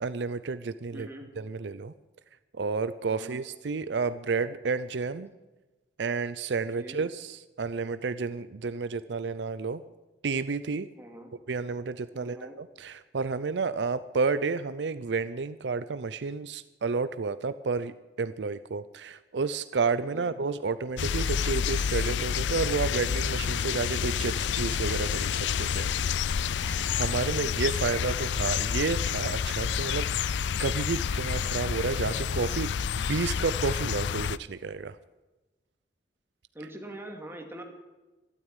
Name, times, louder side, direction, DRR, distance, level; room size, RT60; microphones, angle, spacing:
voice 1, 0.0-1.1 1.4-1.9 2.6-5.3 6.0-9.8 10.2-10.9 11.5-25.9 26.5-30.3 30.6-35.0, right 4 dB, 70° right, 13 dB, 0.5 m, -31 dB
voice 2, 0.9-1.3 3.1-3.3 6.8-7.0 11.0-11.3 12.1-12.6 20.0-20.3 27.4-27.5 36.5-37.6, right 1 dB, 15° right, 2 dB, 2.5 m, -43 dB
sound 1, 21.0-34.4, left 7 dB, 75° left, 0.4 m, -29 dB
sound 2, 26.6-31.9, left 1 dB, 20° left, 3.2 m, -51 dB
13.0 x 12.5 x 9.0 m, 1.2 s
head